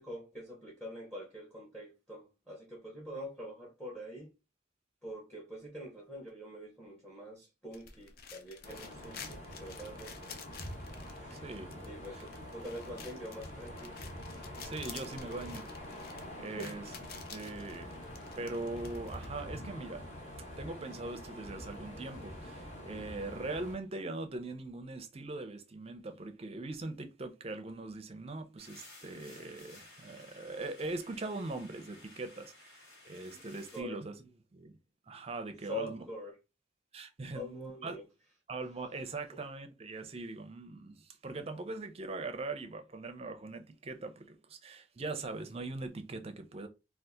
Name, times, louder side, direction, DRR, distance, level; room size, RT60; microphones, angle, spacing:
voice 1, 0.0-4.3 5.0-10.1 11.2-11.4 11.9-13.9 16.5-16.9 33.3-33.4 33.7-34.0 35.6-36.3 37.3-38.0 39.3-39.4, equal, 5° left, 0.8 m, -45 dB
sound 1, 7.7-19.4, left 6 dB, 55° left, 0.5 m, -51 dB
sound 2, 8.6-23.8, left 1 dB, 35° left, 1.0 m, -46 dB
voice 2, 11.3-11.9 12.1-12.2 14.6-16.0 16.4-16.8 17.3-18.1 18.4-20.0 20.6-34.1 34.5-34.8 35.1-36.0 36.9-38.0 38.5-46.7, right 2 dB, 35° right, 0.5 m, -41 dB
sound 3, 28.6-33.8, left 2 dB, 75° left, 1.7 m, -56 dB
2.7 x 2.4 x 3.5 m
head